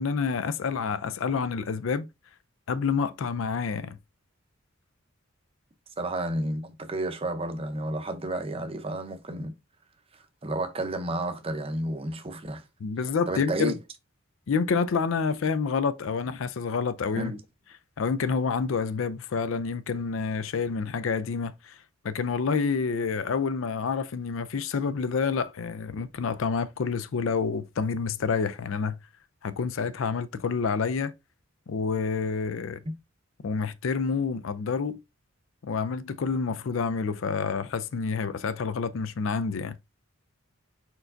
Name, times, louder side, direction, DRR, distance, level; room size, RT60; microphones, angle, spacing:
voice 1, 0.0-2.1 2.7-4.0 12.8-13.7 14.5-17.3 18.0-21.7 22.0-29.0 29.4-31.1 31.7-32.8 33.4-35.0 35.6-39.7, left 5 dB, 70° left, 0.4 m, -28 dB
voice 2, 6.0-9.5 10.4-12.6 13.3-13.8 17.2-17.4, right 1 dB, 25° right, 0.6 m, -31 dB
4.6 x 4.5 x 2.5 m
head